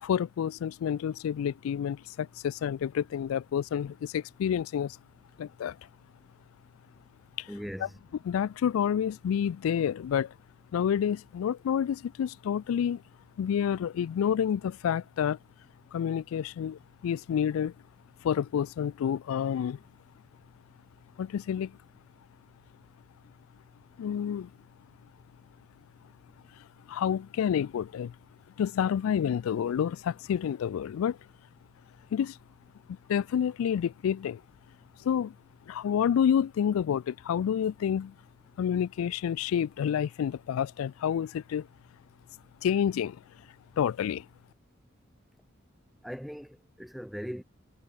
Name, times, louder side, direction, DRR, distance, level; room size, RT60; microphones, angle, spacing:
voice 1, 0.0-5.0 5.4-5.8 7.4-7.5 7.8-7.9 8.2-10.3 10.7-13.0 13.4-15.4 15.9-17.7 18.2-19.8 21.2-21.8 24.0-24.5 26.9-28.1 28.6-31.2 32.1-32.4 32.9-34.4 35.0-35.3 35.7-38.1 38.6-41.7 42.6-43.2 43.8-44.3, left 8 dB, 85° left, 0.3 m, -29 dB
voice 2, 7.5-7.9 46.0-47.4, equal, ahead, 0.7 m, -39 dB
head